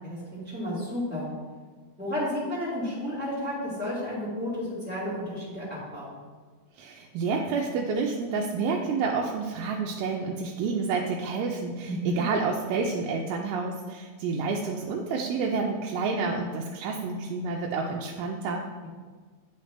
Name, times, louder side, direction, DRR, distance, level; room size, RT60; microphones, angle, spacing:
voice 1, 0.0-1.3 2.0-6.2 11.8-12.2, left 1 dB, 5° right, -11 dB, 0.9 m, -32 dB
voice 2, 6.8-18.6, right 4 dB, 85° right, -1 dB, 2.5 m, -29 dB
9.3 x 5.7 x 3.2 m, 1.5 s
omnidirectional pair, 4.3 m